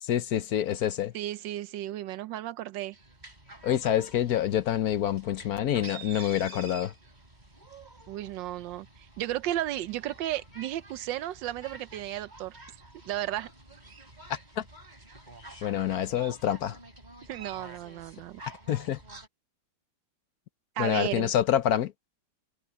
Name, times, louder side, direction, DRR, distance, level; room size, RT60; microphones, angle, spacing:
voice 1, 0.0-1.1 3.6-6.9 14.6-14.7 15.6-16.8 18.7-19.0 20.8-21.9, left 11 dB, 65° left, 1.1 m, -27 dB
voice 2, 1.1-3.0 8.1-8.9 9.2-12.6 13.0-13.5 17.3-18.4 20.8-21.3, right 13 dB, 85° right, 1.4 m, -34 dB
sound 1, 2.9-19.3, right 2 dB, 25° right, 4.2 m, -49 dB
omnidirectional pair, 2.0 m